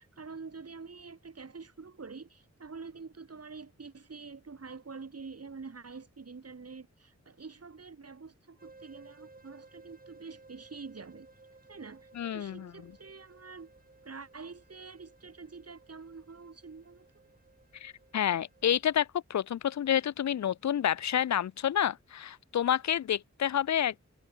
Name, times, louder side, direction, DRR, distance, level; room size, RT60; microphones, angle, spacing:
voice 1, 0.0-11.3 11.7-13.7 14.0-17.1, right 4 dB, 55° right, 2.3 m, -46 dB
sound 1, 8.6-19.1, right 3 dB, 30° right, 1.6 m, -58 dB
voice 2, 12.2-12.7 17.8-24.1, left 10 dB, 70° left, 0.5 m, -29 dB
wide cardioid pair, 80°, 29 cm